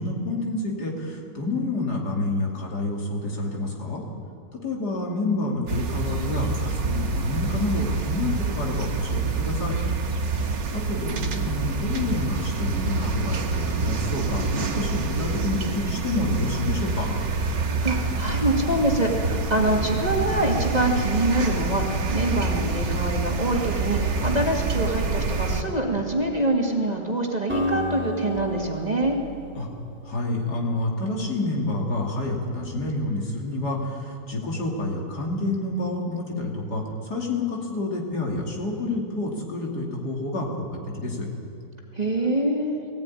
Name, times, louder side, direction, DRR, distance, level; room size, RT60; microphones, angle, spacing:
voice 1, 0.0-4.0 4.5-9.8 10.7-17.1 29.5-29.7 30.0-40.7 40.9-41.3, left 2 dB, 65° left, -1 dB, 3.3 m, -28 dB
sound 1, 5.7-25.6, right 3 dB, 85° right, 2.1 m, -27 dB
voice 2, 17.8-29.2 41.9-42.8, right 1 dB, 25° right, 0 dB, 2.2 m, -25 dB
Acoustic guitar, 27.5-31.6, equal, 5° right, 3.0 m, -32 dB
19.5 x 16.0 x 9.8 m, 2.5 s
omnidirectional pair, 1.9 m